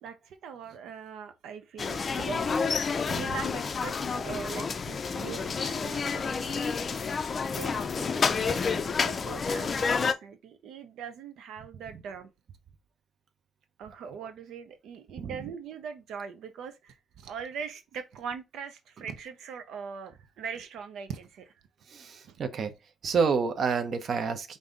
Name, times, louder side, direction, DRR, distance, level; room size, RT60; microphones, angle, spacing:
voice 1, 0.0-2.5 3.1-7.1 7.5-12.3 13.8-21.6 22.2-22.4, right 6 dB, 80° right, 0.6 m, -41 dB
sound 1, 1.8-10.1, left 5 dB, 35° left, 0.4 m, -29 dB
voice 2, 15.2-15.5 21.9-22.7 23.0-24.6, right 5 dB, 50° right, 0.7 m, -29 dB
5.3 x 2.6 x 3.6 m
cardioid pair, 145°, 0 cm